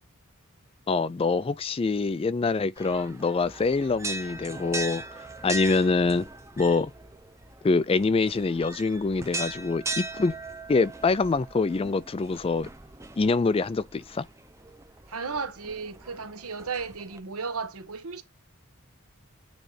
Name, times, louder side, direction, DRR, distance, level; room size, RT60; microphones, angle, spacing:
voice 1, 0.9-5.0 5.4-6.3 6.6-6.9 7.6-10.3 10.7-12.7 13.2-14.2, left 4 dB, 25° left, 0.3 m, -25 dB
sound 1, 2.8-17.2, right 2 dB, 15° right, 0.6 m, -39 dB
voice 2, 15.1-18.2, right 5 dB, 80° right, 1.4 m, -34 dB
9.1 x 3.2 x 4.0 m
head